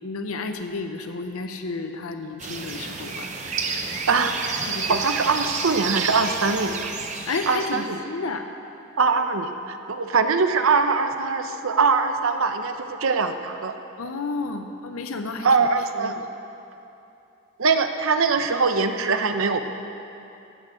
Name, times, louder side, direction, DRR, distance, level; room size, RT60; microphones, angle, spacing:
voice 1, 0.0-3.3 4.6-5.0 7.3-8.4 14.0-15.5 15.9-16.2, left 3 dB, 85° left, 6 dB, 0.7 m, -31 dB
sound 1, 2.4-7.9, right 4 dB, 35° right, 0.8 m, -30 dB
voice 2, 4.1-4.5 4.9-6.9 7.5-8.0 9.0-13.7 15.4-16.2 17.6-19.6, right 4 dB, 70° right, 7 dB, 0.8 m, -22 dB
16.0 x 6.1 x 7.8 m, 2.8 s
head